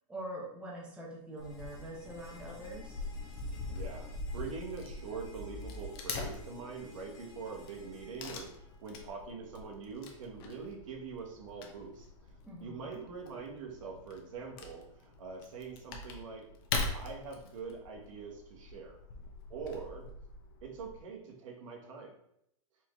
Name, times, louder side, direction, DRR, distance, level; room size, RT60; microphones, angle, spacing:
voice 1, 0.1-3.1 12.4-12.9, right 1 dB, 5° right, -5 dB, 0.9 m, -44 dB
Wood / Tearing, 1.4-21.0, left 3 dB, 45° left, 0.7 m, -43 dB
sound 1, 1.4-9.3, left 3 dB, 25° left, 1.0 m, -57 dB
voice 2, 3.6-12.3 12.6-16.5 16.9-19.0 19.5-20.1 20.6-22.1, right 5 dB, 70° right, 1 dB, 1.2 m, -44 dB
4.4 x 3.1 x 3.6 m, 0.73 s
supercardioid pair, 160°, 17 cm